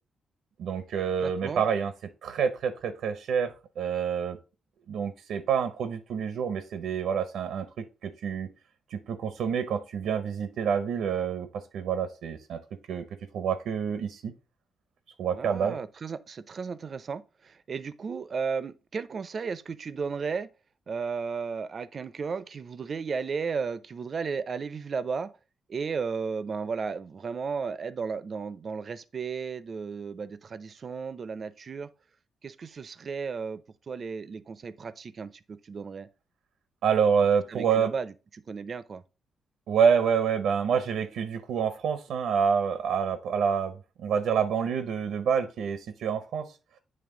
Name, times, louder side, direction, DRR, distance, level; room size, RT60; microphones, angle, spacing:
voice 1, 0.6-1.9 2.2-4.4 4.9-8.5 8.9-12.6 12.9-13.1 13.3-14.3 15.2-15.8 36.8-37.9 39.7-46.5, right 7 dB, 85° right, 0.7 m, -27 dB
voice 2, 1.2-1.7 15.3-20.5 20.9-25.3 25.7-31.9 32.4-36.1 37.5-39.0, right 5 dB, 45° right, 0.5 m, -34 dB
8.8 x 3.2 x 3.7 m
cardioid pair, 115°, 0 cm